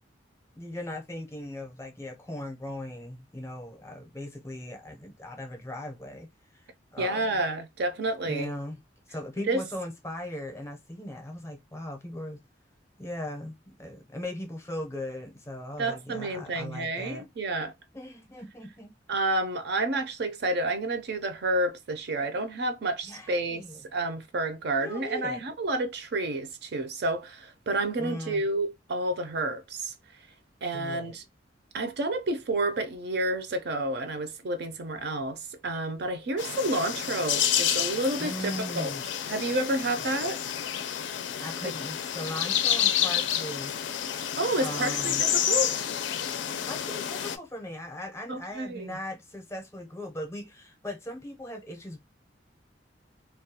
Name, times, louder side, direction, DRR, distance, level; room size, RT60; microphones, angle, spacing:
voice 1, 0.5-6.3 6.5-7.4 8.2-8.8 9.1-12.4 13.0-17.2 17.9-18.9 23.1-23.8 24.8-25.4 28.0-28.4 30.7-31.2 38.2-39.0 40.0-40.1 41.4-43.7 44.6-45.2 46.6-52.0, left 1 dB, 15° left, 0.6 m, -38 dB
voice 2, 7.0-8.5 9.5-9.6 15.8-17.7 19.1-29.9 30.6-31.2 31.7-38.9 39.3-40.4 41.6-41.7 44.4-45.9 48.3-49.0, right 2 dB, 60° right, 0.5 m, -30 dB
sound 1, 36.4-47.4, left 9 dB, 80° left, 0.4 m, -29 dB
2.3 x 2.2 x 2.7 m
head